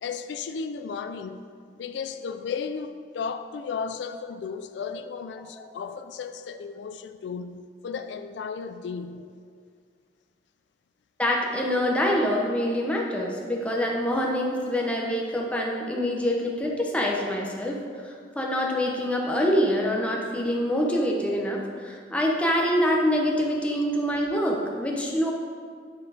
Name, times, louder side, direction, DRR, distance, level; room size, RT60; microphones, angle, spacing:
voice 1, 0.0-1.4 1.8-9.3 14.6-14.7, left 5 dB, 80° left, 9 dB, 0.3 m, -34 dB
voice 2, 11.2-25.3, equal, 5° left, -2 dB, 0.8 m, -25 dB
9.5 x 4.3 x 5.0 m, 2.1 s
head